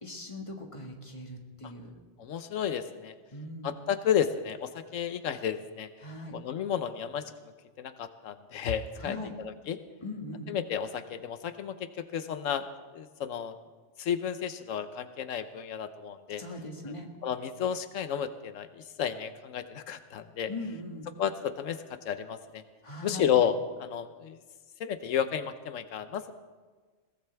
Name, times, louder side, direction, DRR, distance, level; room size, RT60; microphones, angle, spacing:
voice 1, 0.0-1.9 3.3-3.7 6.0-6.4 9.0-9.3 10.0-10.5 16.4-17.1 20.5-21.1 22.8-23.3, left 2 dB, 25° left, 1 dB, 1.9 m, -40 dB
voice 2, 2.2-3.1 3.6-5.9 6.3-7.5 7.8-9.8 10.5-12.7 12.9-13.6 14.0-16.4 17.2-20.5 21.2-22.6 23.0-24.4 24.8-26.3, left 8 dB, 90° left, 10 dB, 1.1 m, -32 dB
21.5 x 17.5 x 3.4 m, 1.4 s
omnidirectional pair, 1.3 m